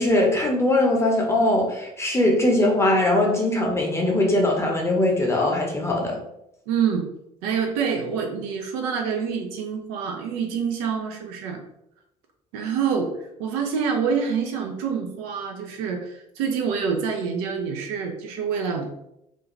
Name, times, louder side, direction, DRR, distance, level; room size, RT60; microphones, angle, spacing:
voice 1, 0.0-6.2, left 1 dB, 15° left, -1 dB, 0.8 m, -21 dB
voice 2, 6.7-7.1 7.4-11.6 12.5-18.9, right 6 dB, 65° right, 2 dB, 0.4 m, -26 dB
2.5 x 2.2 x 3.0 m, 0.81 s
figure-of-eight pair, 50°, 20 cm